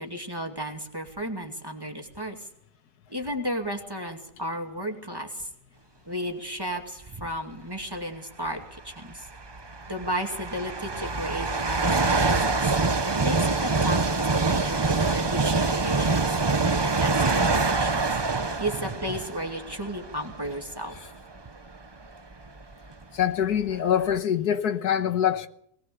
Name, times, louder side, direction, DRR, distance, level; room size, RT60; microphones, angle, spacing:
voice 1, 0.0-2.5 3.1-5.5 6.1-9.3 9.9-12.7 13.2-14.0 14.3-18.2 18.6-21.0, equal, 15° right, 2.4 m, -34 dB
sound 1, 7.1-7.4 8.5-8.6 9.3-20.7 21.3-21.5 22.3-22.4 22.6-24.2, right 3 dB, 30° right, 0.4 m, -25 dB
voice 2, 23.1-25.5, left 9 dB, 75° left, 1.7 m, -24 dB
20.5 x 19.0 x 7.0 m
omnidirectional pair, 1.7 m